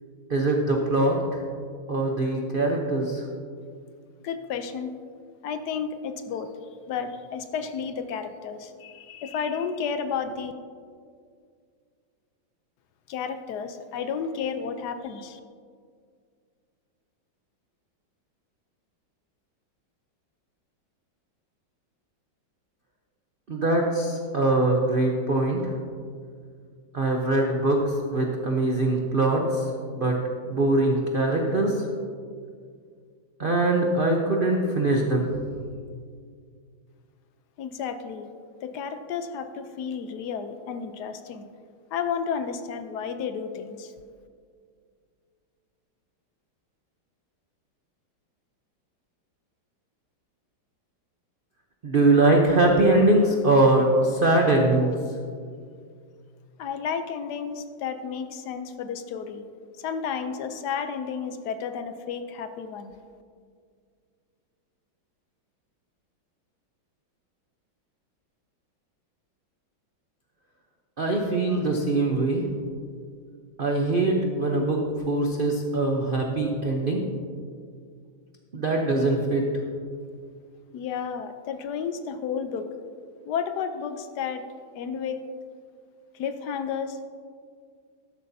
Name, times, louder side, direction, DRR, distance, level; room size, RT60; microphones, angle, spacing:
voice 1, 0.3-1.2 1.9-3.2 23.5-25.6 26.9-29.6 29.9-30.2 30.4-31.8 33.4-35.3 51.8-55.0 71.0-72.4 73.6-74.8 75.1-77.0 78.5-79.4, right 2 dB, 75° right, 0 dB, 0.5 m, -22 dB
voice 2, 4.2-4.9 5.4-6.5 6.9-10.5 13.1-15.4 37.6-38.3 38.6-41.5 41.9-43.9 56.6-59.4 59.8-62.9 80.7-82.7 83.2-84.4 84.7-85.2 86.1-87.0, left 6 dB, 70° left, 9 dB, 1.0 m, -32 dB
13.0 x 11.0 x 2.7 m, 2.1 s
omnidirectional pair, 2.2 m